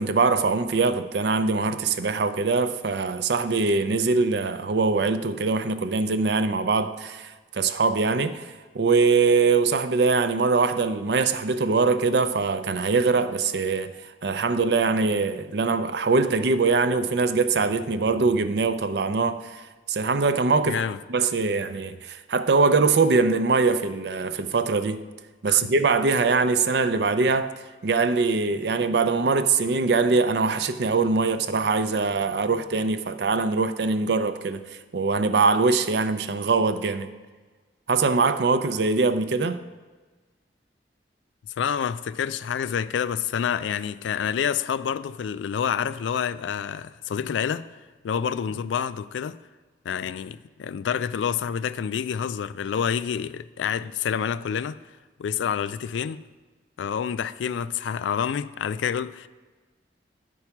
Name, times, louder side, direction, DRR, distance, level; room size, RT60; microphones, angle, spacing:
voice 1, 0.0-14.0 14.2-20.8 21.1-25.0 25.4-27.5 27.8-34.6 34.9-37.1 37.9-39.6, right 4 dB, 65° right, 0.5 m, -22 dB
voice 2, 20.6-21.0 25.5-25.7 41.6-47.7 48.0-49.4 49.8-54.8 55.2-56.2 56.8-59.3, left 7 dB, 90° left, 0.3 m, -28 dB
9.7 x 4.6 x 5.8 m
head